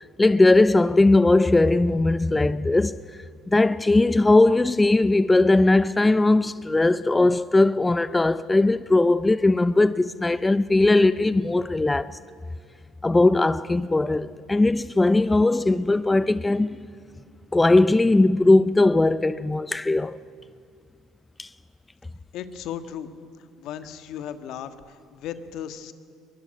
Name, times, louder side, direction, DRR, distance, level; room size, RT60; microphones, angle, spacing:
voice 1, 0.2-3.0 3.5-12.2 13.0-16.8 17.5-20.2 21.4-21.5, left 2 dB, 15° left, 0.6 m, -19 dB
voice 2, 22.3-23.1 23.6-25.9, left 9 dB, 70° left, 1.6 m, -36 dB
23.0 x 21.0 x 9.2 m
supercardioid pair, 75°, 0 cm